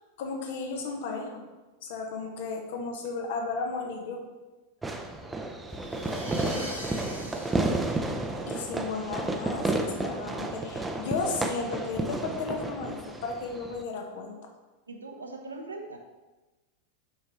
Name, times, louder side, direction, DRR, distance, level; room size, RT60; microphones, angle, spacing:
voice 1, 0.2-1.4 1.8-4.2 8.5-14.4, left 4 dB, 55° left, 3 dB, 1.0 m, -34 dB
Fireworks, 4.8-13.8, right 2 dB, 10° right, 0.5 m, -32 dB
sound 1, 5.7-9.0, left 1 dB, 85° left, 1.2 m, -42 dB
voice 2, 5.8-7.4 14.9-16.0, right 3 dB, 75° right, 3 dB, 0.8 m, -43 dB
7.8 x 5.3 x 3.1 m, 1.2 s
figure-of-eight pair, 90°, 0 cm